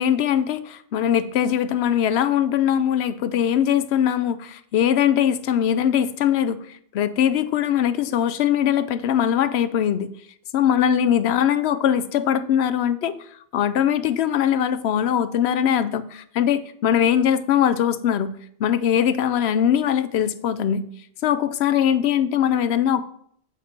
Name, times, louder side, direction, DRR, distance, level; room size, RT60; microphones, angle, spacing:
voice 1, 0.0-6.6 6.9-10.1 10.5-13.2 13.5-20.8 21.2-23.0, left 9 dB, 90° left, 13 dB, 0.8 m, -21 dB
7.4 x 5.0 x 4.3 m, 0.64 s
omnidirectional pair, 1.0 m